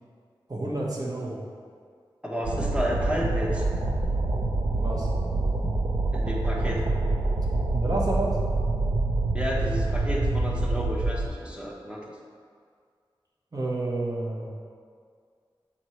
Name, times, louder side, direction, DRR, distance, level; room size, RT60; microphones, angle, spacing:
voice 1, 0.5-1.4 4.7-5.1 7.7-8.4 13.5-14.5, right 2 dB, 45° right, -3 dB, 1.2 m, -30 dB
voice 2, 2.2-3.6 6.1-6.8 9.3-12.0, equal, 10° right, -3 dB, 1.1 m, -31 dB
sound 1, 2.4-11.3, right 2 dB, 75° right, 0.6 m, -26 dB
7.2 x 4.2 x 3.2 m, 2.1 s
wide cardioid pair, 55°, 9 cm